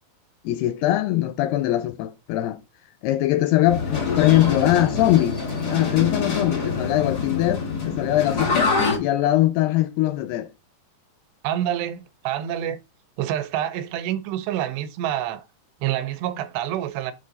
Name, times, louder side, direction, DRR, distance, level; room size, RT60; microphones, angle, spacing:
voice 1, 0.4-2.6 3.0-5.4 5.7-10.5, left 14 dB, 85° left, 2.4 m, -21 dB
sound 1, 3.7-9.0, left 4 dB, 65° left, 0.9 m, -25 dB
voice 2, 11.4-12.8 13.2-15.5 15.8-17.1, right 11 dB, 80° right, 2.8 m, -27 dB
7.6 x 3.8 x 3.9 m
omnidirectional pair, 4.9 m